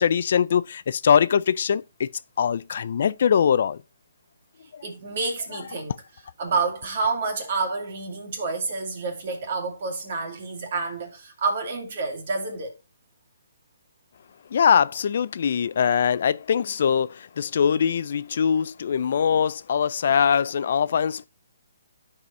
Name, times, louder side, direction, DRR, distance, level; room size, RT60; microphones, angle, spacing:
voice 1, 0.0-2.1 2.4-3.8 4.7-4.8 14.5-21.2, left 7 dB, 55° left, 0.3 m, -22 dB
voice 2, 4.8-5.9 6.4-12.7, right 4 dB, 50° right, 2.2 m, -28 dB
12.5 x 4.8 x 2.7 m
hypercardioid pair, 160°, 0 cm